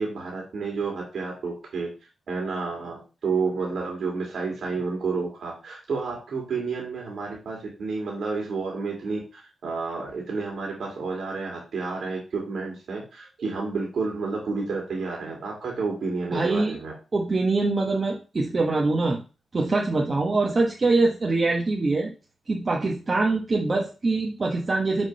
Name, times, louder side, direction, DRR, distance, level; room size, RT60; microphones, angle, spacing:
voice 1, 0.0-1.9 2.3-16.9, right 4 dB, 75° right, -2 dB, 2.4 m, -30 dB
voice 2, 16.3-16.8 17.1-19.2 19.5-22.1 22.5-25.1, right 3 dB, 40° right, -1 dB, 1.2 m, -24 dB
6.5 x 3.8 x 5.4 m, 0.32 s
cardioid pair, 75°, 0 cm